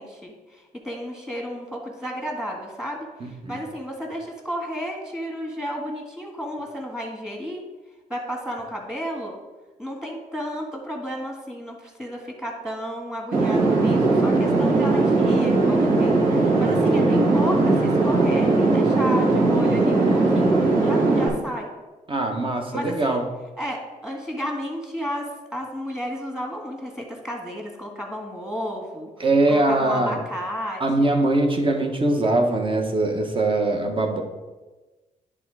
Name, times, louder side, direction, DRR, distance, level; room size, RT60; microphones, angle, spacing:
voice 1, 0.0-7.6 8.1-9.4 9.8-21.7 22.7-23.2 23.6-31.1, equal, 5° right, 1 dB, 1.8 m, -32 dB
voice 2, 3.2-3.6 16.5-17.2 22.1-23.3 29.2-30.2 30.8-34.2, right 2 dB, 35° right, 3 dB, 1.2 m, -22 dB
sound 1, 13.3-21.3, right 3 dB, 75° right, 2.4 m, -19 dB
10.0 x 3.6 x 4.8 m, 1.2 s
cardioid pair, 90°, 15 cm